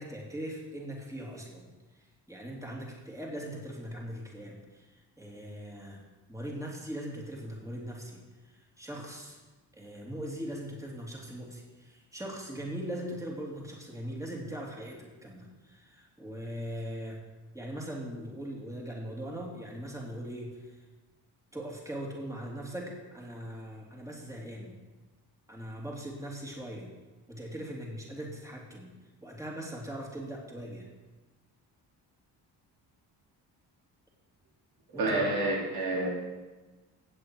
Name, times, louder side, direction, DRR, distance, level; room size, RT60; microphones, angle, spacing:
voice 1, 0.0-1.7 1.9-6.0 6.3-9.4 9.7-17.2 17.5-20.8 21.5-24.7 25.5-26.9 27.3-28.9 29.2-30.9 34.9-35.3, equal, 10° right, -2 dB, 3.3 m, -40 dB
voice 2, 34.9-36.1, right 2 dB, 65° right, -2 dB, 3.1 m, -28 dB
16.0 x 7.8 x 4.8 m, 1.2 s
cardioid pair, 70°, 41 cm